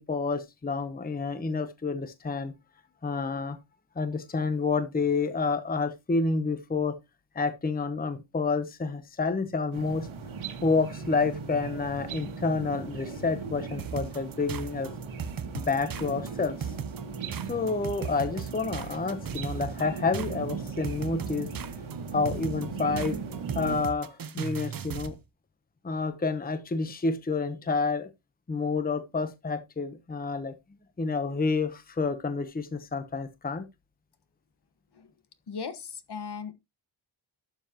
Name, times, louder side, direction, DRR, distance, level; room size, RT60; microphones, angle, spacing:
voice 1, 0.0-2.5 3.0-3.6 4.0-7.0 7.3-10.1 10.6-14.9 15.5-16.7 17.5-21.5 22.1-23.2 23.5-25.2 25.8-28.1 28.5-30.5 31.0-33.7, left 4 dB, 20° left, 0.9 m, -29 dB
sound 1, 9.7-23.8, right 5 dB, 90° right, 1.8 m, -38 dB
sound 2, 13.8-25.2, right 7 dB, 45° right, 0.8 m, -37 dB
voice 2, 35.5-36.5, left 5 dB, 55° left, 1.4 m, -37 dB
12.0 x 7.1 x 2.9 m
wide cardioid pair, 145°, 47 cm